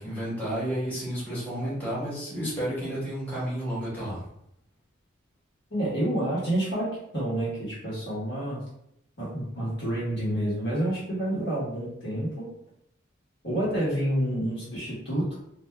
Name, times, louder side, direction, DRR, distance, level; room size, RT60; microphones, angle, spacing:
voice 1, 0.0-4.3, right 1 dB, 10° left, -10 dB, 1.2 m, -31 dB
voice 2, 5.7-8.6 9.2-12.5 13.4-15.4, right 1 dB, 55° left, -7 dB, 1.2 m, -28 dB
2.6 x 2.2 x 3.3 m, 0.77 s
head